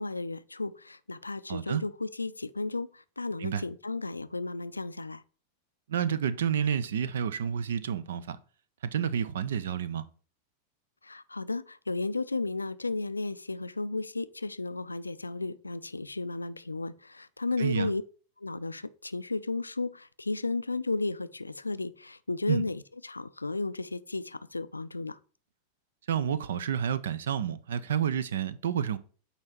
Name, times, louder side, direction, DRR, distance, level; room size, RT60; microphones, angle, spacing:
voice 1, 0.0-5.2 11.0-18.0 18.4-25.2, left 3 dB, 80° left, 0.3 m, -34 dB
voice 2, 1.5-1.8 3.4-3.6 5.9-8.4 8.9-10.0 17.6-17.9 22.5-22.6 26.1-29.0, right 8 dB, 60° right, 0.5 m, -29 dB
8.7 x 2.9 x 4.3 m
figure-of-eight pair, 90°, 0 cm